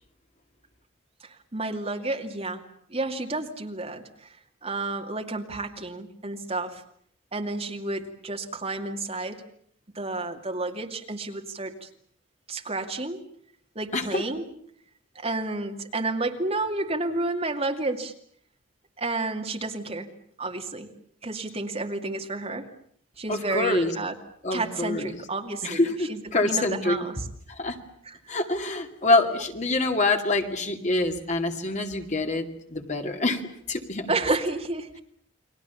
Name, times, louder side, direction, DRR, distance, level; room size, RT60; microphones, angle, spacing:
voice 1, 1.2-2.6 2.9-4.3 4.6-6.8 7.3-9.4 9.9-11.9 12.5-13.2 13.8-14.5 15.1-18.1 19.0-20.1 20.4-20.9 21.2-22.7 23.2-24.2 24.5-27.3 28.0-28.2 34.1-35.0, right 2 dB, 30° right, 3 dB, 2.4 m, -31 dB
voice 2, 23.3-23.9 24.4-25.1 25.6-27.0 27.6-27.8 28.3-33.4 33.7-34.1, left 2 dB, 40° left, 4 dB, 2.4 m, -25 dB
29.5 x 23.0 x 7.1 m, 0.63 s
head